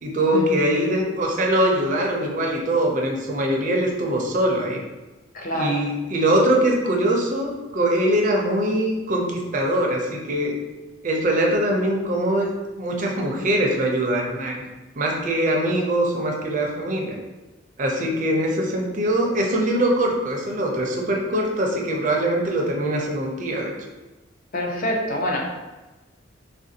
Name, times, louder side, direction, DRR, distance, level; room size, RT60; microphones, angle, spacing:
voice 1, 0.0-4.8 5.5-10.5 11.0-12.5 12.8-14.6 15.0-17.2 17.8-23.7, right 1 dB, 40° right, 0 dB, 0.4 m, -22 dB
voice 2, 5.3-5.8 18.1-18.4 24.5-25.4, left 1 dB, 45° left, -1 dB, 0.5 m, -26 dB
3.4 x 2.4 x 2.7 m, 1.1 s
head